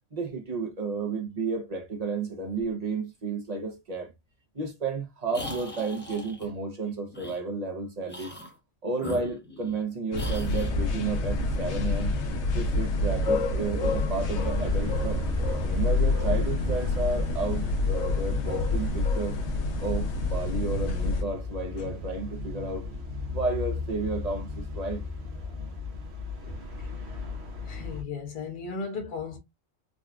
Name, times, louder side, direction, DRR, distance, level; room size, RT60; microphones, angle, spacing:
voice 1, 0.1-4.1 4.5-8.3 8.8-12.1 12.5-15.2 15.6-19.4 19.8-22.9 23.3-25.0, right 3 dB, 40° right, 0.6 m, -32 dB
sound 1, 5.3-6.5 7.1-7.4 8.1-8.5 9.0-9.8 10.1-10.7, left 2 dB, 10° left, 0.7 m, -40 dB
sound 2, 10.1-21.2, left 2 dB, 65° left, 0.9 m, -27 dB
sound 3, 14.3-28.0, left 3 dB, 60° right, 0.9 m, -36 dB
voice 2, 26.4-26.9 27.7-29.4, left 4 dB, 45° left, 1.0 m, -36 dB
3.8 x 2.2 x 2.3 m
omnidirectional pair, 1.3 m